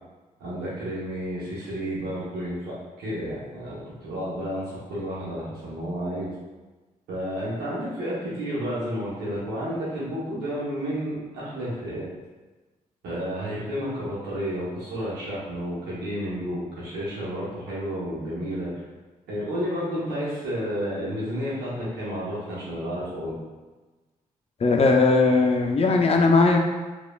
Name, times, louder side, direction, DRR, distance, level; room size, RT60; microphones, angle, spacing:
voice 1, 0.4-6.3 7.1-12.1 13.0-18.7 19.3-23.4, equal, 85° right, -8 dB, 0.9 m, -31 dB
voice 2, 24.6-26.6, left 3 dB, 40° left, 2 dB, 0.4 m, -19 dB
3.0 x 2.3 x 2.2 m, 1.2 s
supercardioid pair, 45°, 16 cm